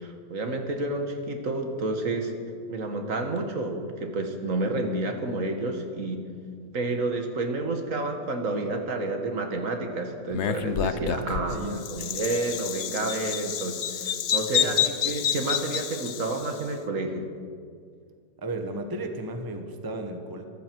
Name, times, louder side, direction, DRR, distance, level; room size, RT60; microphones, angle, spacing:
voice 1, 0.0-2.3 2.7-6.2 6.7-17.2, right 2 dB, 55° right, 5 dB, 1.7 m, -30 dB
Bird vocalization bird call bird song, 10.3-16.6, left 9 dB, 55° left, 0.8 m, -29 dB
voice 2, 11.1-11.8 14.6-14.9 18.4-20.4, right 2 dB, 15° right, 5 dB, 1.0 m, -34 dB
23.5 x 13.5 x 4.6 m, 2.2 s
omnidirectional pair, 1.7 m